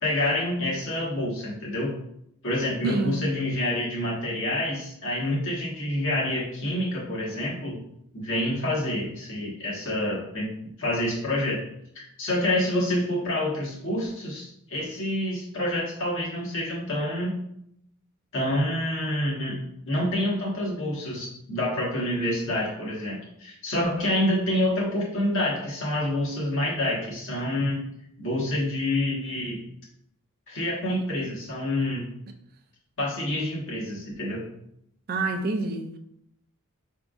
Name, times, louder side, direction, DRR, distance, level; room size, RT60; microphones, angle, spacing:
voice 1, 0.0-1.9 2.4-7.8 8.1-10.5 10.8-11.6 11.9-17.3 18.3-19.6 19.8-27.8 28.2-29.6 30.5-32.0 33.0-34.4, left 1 dB, 60° left, 1.5 m, -27 dB
voice 2, 2.8-3.3 30.9-31.0 35.1-36.0, right 3 dB, 45° right, 0.4 m, -28 dB
5.0 x 3.5 x 2.4 m
head